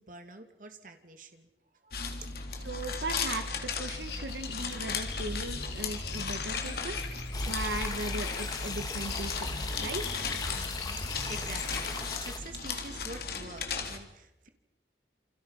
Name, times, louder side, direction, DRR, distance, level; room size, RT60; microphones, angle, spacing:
voice 1, 0.0-1.5 1.8-2.3 11.0-14.5, right 3 dB, 50° right, 6 dB, 2.8 m, -47 dB
sound 1, 1.9-14.0, left 4 dB, 60° left, 3.5 m, -36 dB
voice 2, 2.6-7.0 7.5-9.5 9.8-10.2, right 2 dB, 85° right, 8 dB, 1.9 m, -38 dB
sound 2, 3.5-11.8, left 3 dB, 80° left, 4.2 m, -39 dB
sound 3, 7.3-12.4, left 4 dB, 20° left, 2.2 m, -40 dB
29.0 x 27.5 x 5.8 m, 0.86 s
head